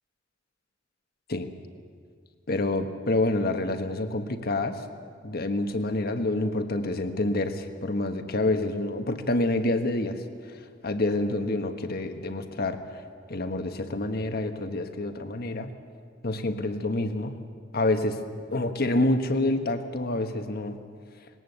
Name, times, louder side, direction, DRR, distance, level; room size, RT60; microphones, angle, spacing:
voice 1, 2.5-4.8 5.2-10.2 10.8-13.0 13.3-15.7 16.2-17.4 17.7-18.2 18.5-20.8, left 2 dB, 55° left, 7 dB, 1.4 m, -27 dB
20.0 x 18.5 x 8.1 m, 2.1 s
head